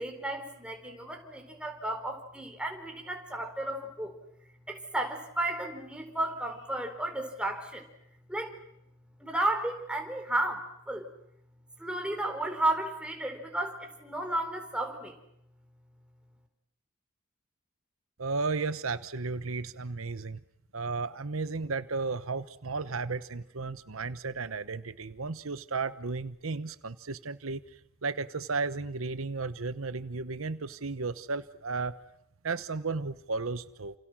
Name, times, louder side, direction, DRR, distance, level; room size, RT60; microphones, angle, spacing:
voice 1, 0.0-4.2 4.7-7.9 8.3-8.6 9.2-11.1 11.8-15.2, right 1 dB, 5° right, 3 dB, 4.3 m, -33 dB
voice 2, 18.2-20.4 20.7-27.6 28.0-32.0 32.4-33.9, right 4 dB, 85° right, 13 dB, 1.0 m, -34 dB
29.5 x 28.5 x 6.3 m, 0.79 s
head